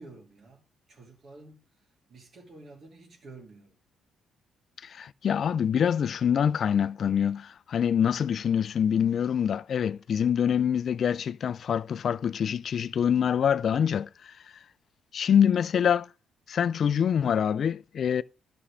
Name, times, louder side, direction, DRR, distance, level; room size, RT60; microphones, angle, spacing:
voice 1, 0.0-1.7 2.1-3.8, right 3 dB, 50° right, 2.7 m, -50 dB
voice 2, 4.8-14.3 15.1-16.1 16.5-18.2, left 8 dB, 55° left, 0.4 m, -25 dB
11.0 x 6.2 x 3.3 m
cardioid pair, 90°, 0 cm